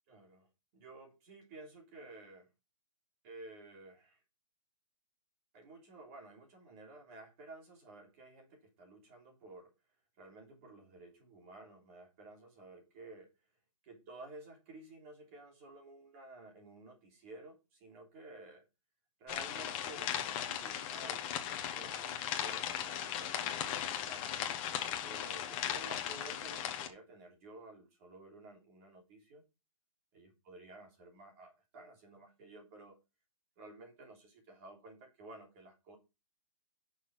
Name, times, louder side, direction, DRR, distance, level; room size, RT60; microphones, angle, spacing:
voice 1, 0.1-0.5 0.7-2.5 3.2-4.2 5.5-9.7 10.2-13.3 13.8-18.6 19.2-24.4 25.0-29.4 30.1-33.0 33.6-36.0, right 2 dB, 25° right, 1 dB, 3.3 m, -53 dB
sound 1, 19.3-26.9, left 10 dB, 20° left, 1.3 m, -37 dB
11.0 x 6.5 x 4.3 m, 0.26 s
hypercardioid pair, 170°, 17 cm